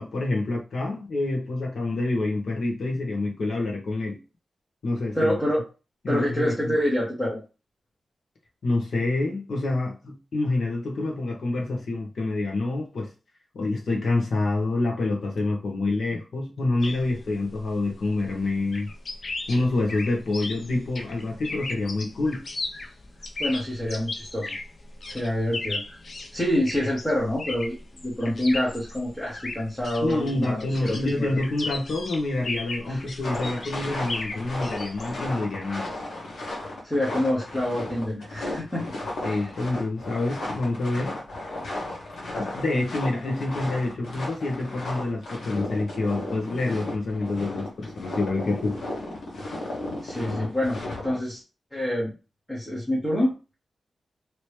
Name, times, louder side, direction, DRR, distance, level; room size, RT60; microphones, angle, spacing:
voice 1, 0.0-4.2 4.8-5.3 6.0-6.7 8.6-13.1 13.5-18.9 19.5-22.4 30.0-35.9 39.2-41.1 42.3-48.8, left 2 dB, 60° left, 1.1 m, -27 dB
voice 2, 5.1-5.6 6.1-7.4 23.4-24.5 25.1-26.0 26.3-27.8 28.0-31.4 32.9-33.0 36.8-38.9 39.2-39.4 50.0-51.4 51.7-52.1 52.5-53.5, left 1 dB, 10° left, 1.1 m, -27 dB
sound 1, 16.8-35.3, left 2 dB, 40° left, 0.5 m, -37 dB
sound 2, 33.2-51.2, left 2 dB, 90° left, 1.3 m, -34 dB
3.0 x 3.0 x 3.2 m
wide cardioid pair, 175°, 0 cm